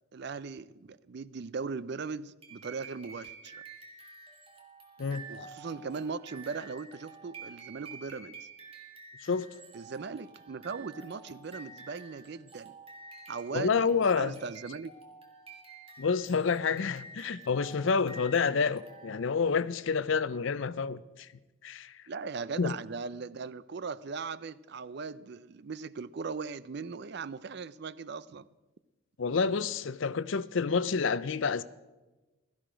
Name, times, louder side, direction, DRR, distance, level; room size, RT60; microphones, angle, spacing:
voice 1, 0.1-3.6 5.3-8.5 9.7-12.7 13.3-13.9 14.2-15.0 22.1-28.5, right 4 dB, 50° right, 0.4 m, -39 dB
sound 1, 2.4-19.5, right 3 dB, 25° right, 1.8 m, -50 dB
voice 2, 13.5-14.3 16.0-21.3 21.6-22.0 22.6-22.7 29.2-31.6, left 5 dB, 65° left, 0.5 m, -28 dB
16.5 x 13.5 x 5.1 m
head